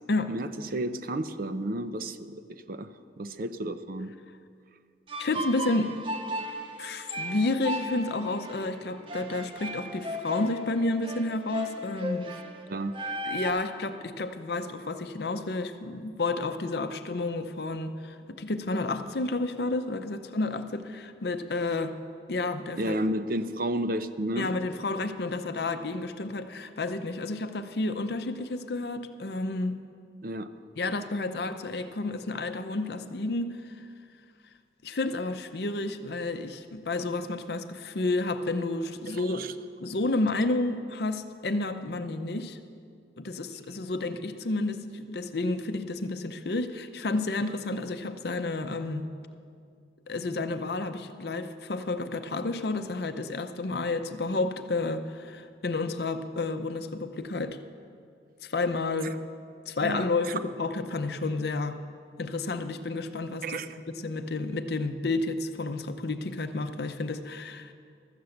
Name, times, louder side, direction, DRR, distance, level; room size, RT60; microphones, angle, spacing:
voice 1, 0.3-4.1 12.3-12.4 12.7-12.9 22.8-24.5 30.2-30.5 39.1-39.5 59.8-60.4 63.4-63.7, right 1 dB, 55° right, 11 dB, 0.5 m, -32 dB
sound 1, 5.1-13.5, equal, 30° right, 0.9 m, -36 dB
voice 2, 5.2-6.0 6.8-12.3 13.2-22.0 22.3-22.9 24.4-29.8 30.8-33.8 34.8-39.5 39.8-42.6 43.2-49.1 50.1-57.6 58.4-59.2 59.7-61.8 62.2-67.7, left 2 dB, 60° left, 9 dB, 0.6 m, -31 dB
13.0 x 7.0 x 7.8 m, 2.3 s
head